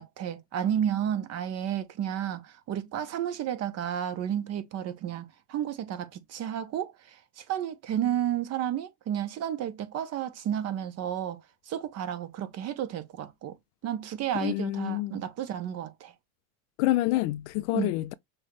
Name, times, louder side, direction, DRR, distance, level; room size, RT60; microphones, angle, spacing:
voice 1, 0.0-13.6 13.8-16.1 17.7-17.9, right 10 dB, 35° right, 0.8 m, -32 dB
voice 2, 14.3-15.2 16.8-18.1, left 17 dB, 50° left, 0.4 m, -27 dB
6.1 x 2.3 x 3.1 m
hypercardioid pair, 110°, 45 cm